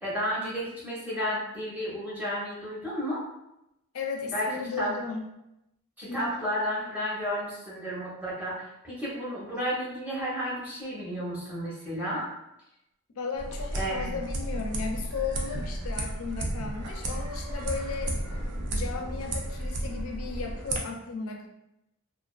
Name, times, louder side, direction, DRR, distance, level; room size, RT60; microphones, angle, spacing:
voice 1, 0.0-3.2 4.3-4.5 4.8-5.0 6.0-12.3 13.7-14.0, equal, 10° right, -8 dB, 0.8 m, -32 dB
voice 2, 3.9-5.3 6.1-6.4 13.2-18.1 18.7-21.5, left 5 dB, 65° left, 2 dB, 0.4 m, -35 dB
sound 1, 13.4-20.8, right 1 dB, 90° right, 0.5 m, -33 dB
2.4 x 2.4 x 2.3 m, 0.87 s
head